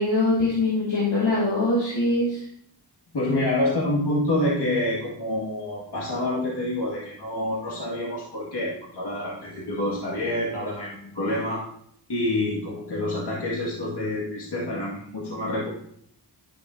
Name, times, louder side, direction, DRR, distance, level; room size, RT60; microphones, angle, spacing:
voice 1, 0.0-2.4, left 2 dB, 90° left, -6 dB, 2.2 m, -23 dB
voice 2, 3.1-11.6 12.1-15.7, left 1 dB, 65° left, -4 dB, 1.9 m, -27 dB
10.5 x 6.5 x 2.6 m, 0.68 s
cardioid pair, 45°, 43 cm